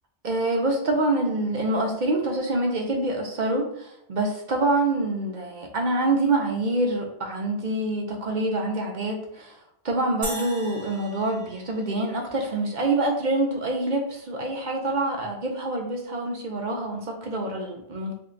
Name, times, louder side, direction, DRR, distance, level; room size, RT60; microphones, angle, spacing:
voice 1, 0.2-9.6 9.8-18.1, right 2 dB, 50° right, 1 dB, 0.6 m, -26 dB
sound 1, 10.2-12.7, right 2 dB, 35° right, 0.9 m, -38 dB
3.5 x 2.2 x 3.8 m, 0.75 s
omnidirectional pair, 1.2 m